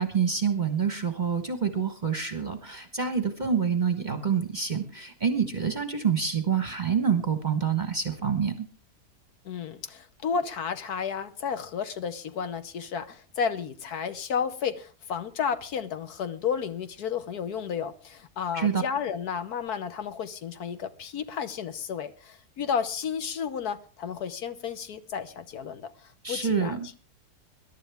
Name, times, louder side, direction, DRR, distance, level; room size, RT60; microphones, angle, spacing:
voice 1, 0.0-8.7 18.5-18.8 26.2-26.9, right 6 dB, 30° right, 8 dB, 1.1 m, -27 dB
voice 2, 9.4-26.9, left 7 dB, 65° left, 11 dB, 1.4 m, -32 dB
21.5 x 11.5 x 3.5 m, 0.36 s
omnidirectional pair, 1.9 m